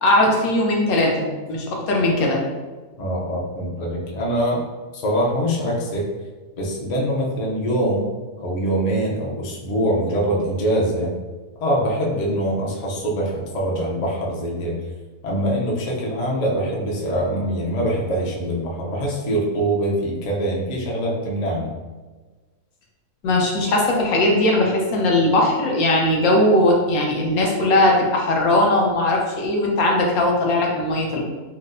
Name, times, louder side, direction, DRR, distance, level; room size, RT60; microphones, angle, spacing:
voice 1, 0.0-2.4 23.2-31.2, left 1 dB, 80° left, -1 dB, 1.2 m, -19 dB
voice 2, 3.0-4.6 4.9-6.1 6.6-11.1 11.6-14.8 15.2-21.7, right 1 dB, 55° left, -3 dB, 0.4 m, -23 dB
4.4 x 2.0 x 2.5 m, 1.3 s
omnidirectional pair, 1.5 m